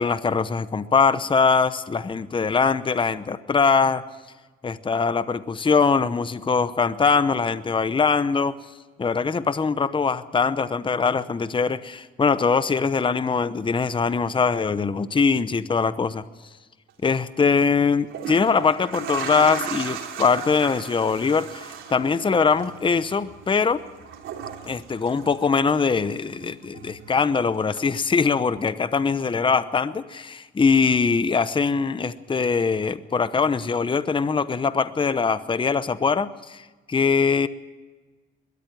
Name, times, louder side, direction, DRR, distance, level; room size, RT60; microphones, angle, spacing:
voice 1, 0.0-4.0 4.6-8.6 9.0-16.2 17.0-23.8 24.6-37.5, left 5 dB, 25° left, 14 dB, 0.8 m, -22 dB
sound 1, 16.9-17.1 17.9-26.0 26.3-27.3 27.8-27.9, right 8 dB, 80° right, 3.3 m, -36 dB
21.0 x 13.5 x 9.1 m, 1.3 s
cardioid pair, 90°, 20 cm